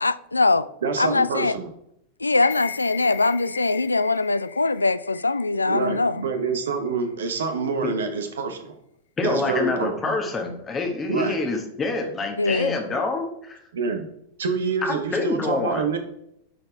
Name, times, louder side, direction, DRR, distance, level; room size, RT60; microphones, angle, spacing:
voice 1, 0.0-0.7 1.0-1.5 2.2-6.2 12.4-12.8, left 3 dB, 80° left, 0.3 m, -22 dB
voice 2, 0.8-1.7 5.6-8.8 9.2-10.1 11.1-11.4 13.7-14.1 14.4-16.0, right 4 dB, 65° right, 1.1 m, -27 dB
sound 1, 2.3-6.5 6.9-7.0, left 9 dB, 60° left, 0.7 m, -38 dB
voice 3, 9.2-13.6 14.8-15.8, left 3 dB, 20° left, 1.4 m, -26 dB
10.0 x 4.4 x 3.3 m
figure-of-eight pair, 90°, 0 cm